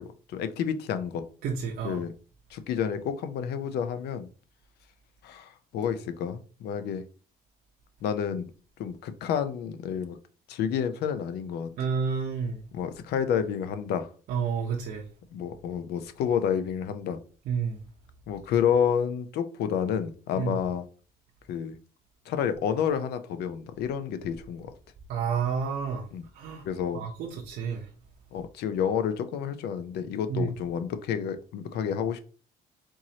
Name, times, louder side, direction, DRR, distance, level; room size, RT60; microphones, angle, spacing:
voice 1, 0.0-1.2 1.8-2.1 2.5-4.3 5.2-7.0 8.0-8.5 8.8-10.2 10.5-11.7 12.7-14.1 15.3-17.2 18.3-20.9 21.5-21.8 22.3-24.7 26.1-26.2 26.6-27.1 28.3-32.2, left 8 dB, 75° left, 0.6 m, -29 dB
voice 2, 1.4-2.0 11.8-12.6 14.3-15.0 17.5-17.8 20.3-20.6 25.1-26.1 26.3-26.6 26.9-27.9 30.3-30.5, right 6 dB, 65° right, 0.8 m, -30 dB
4.5 x 3.0 x 2.8 m
cardioid pair, 110°, 17 cm